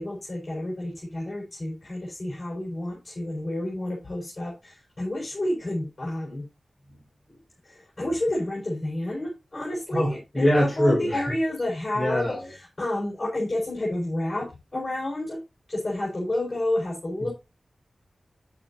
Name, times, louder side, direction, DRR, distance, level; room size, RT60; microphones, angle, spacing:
voice 1, 0.0-6.4 7.6-14.5 14.7-15.4 15.7-17.3, left 1 dB, 35° left, -3 dB, 5.2 m, -30 dB
voice 2, 9.9-11.3 11.9-12.4 17.2-17.3, left 1 dB, 15° left, -4 dB, 5.3 m, -23 dB
9.9 x 8.6 x 2.8 m, 0.25 s
wide cardioid pair, 70°, 0 cm